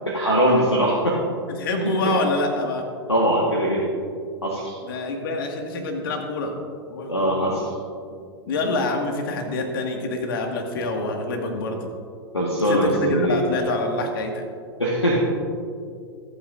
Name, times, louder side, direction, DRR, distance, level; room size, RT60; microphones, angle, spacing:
voice 1, 0.1-1.2 1.8-2.1 3.1-3.9 4.4-4.8 7.1-7.7 12.3-13.4 14.8-15.2, equal, 90° left, -4 dB, 1.6 m, -21 dB
voice 2, 1.6-2.9 4.8-6.6 6.9-7.7 8.5-11.9 12.7-14.5, left 2 dB, 55° left, 3 dB, 1.9 m, -26 dB
26.5 x 8.8 x 2.6 m, 2.3 s
figure-of-eight pair, 100°, 14 cm